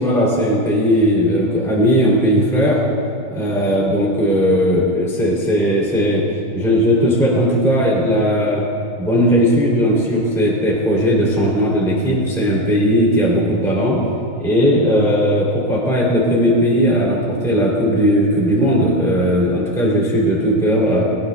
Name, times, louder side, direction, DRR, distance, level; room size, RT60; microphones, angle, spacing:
voice 1, 0.0-2.8 3.3-6.2 6.5-8.6 9.0-14.0 14.4-21.0, equal, ahead, -5 dB, 1.4 m, -17 dB
20.0 x 20.0 x 2.3 m, 2.4 s
omnidirectional pair, 5.4 m